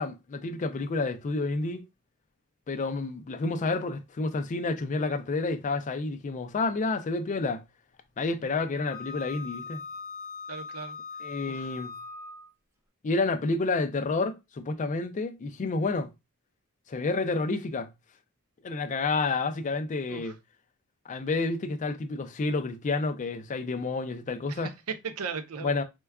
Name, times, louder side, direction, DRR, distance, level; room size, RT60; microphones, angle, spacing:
voice 1, 0.0-1.9 2.7-7.6 8.2-9.8 11.2-11.9 13.0-16.1 16.9-17.9 18.6-20.3 21.1-24.7 25.6-25.8, left 3 dB, 35° left, 0.4 m, -29 dB
Wind instrument woodwind instrument, 8.9-12.5, left 4 dB, 15° right, 0.6 m, -40 dB
voice 2, 10.5-11.0 11.5-11.8 20.1-20.3 24.5-25.8, right 5 dB, 75° right, 0.5 m, -37 dB
4.4 x 2.3 x 2.2 m
head